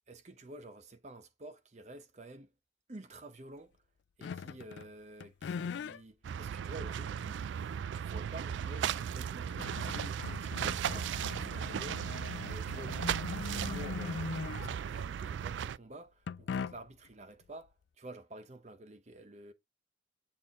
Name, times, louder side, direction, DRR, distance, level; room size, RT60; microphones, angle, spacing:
voice 1, 0.1-2.5 2.9-3.8 4.2-7.4 7.9-19.5, right 1 dB, 40° right, 0.8 m, -50 dB
sound 1, 4.2-4.9 5.2-6.0 6.7-6.8 8.8-8.9 9.3-15.0 16.3-17.1, left 5 dB, 80° left, 0.3 m, -41 dB
sound 2, 6.2-15.8, right 8 dB, 90° right, 0.3 m, -36 dB
7.6 x 4.3 x 3.7 m
head